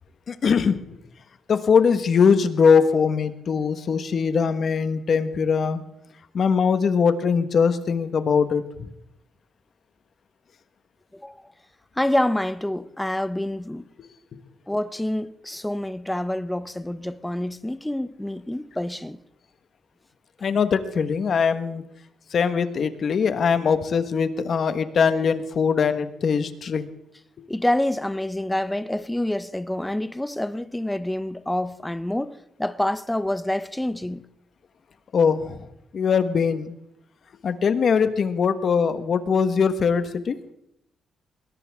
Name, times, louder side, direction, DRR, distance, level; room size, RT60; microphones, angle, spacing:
voice 1, 0.3-0.8 1.5-5.8 6.3-8.9 20.4-21.8 22.3-26.9 35.1-35.7 35.9-36.7 37.4-40.4, left 6 dB, 50° left, 1.3 m, -21 dB
voice 2, 12.0-13.9 14.7-19.2 27.5-34.2, left 1 dB, 5° left, 0.6 m, -27 dB
21.0 x 17.5 x 3.6 m
cardioid pair, 120°, 0 cm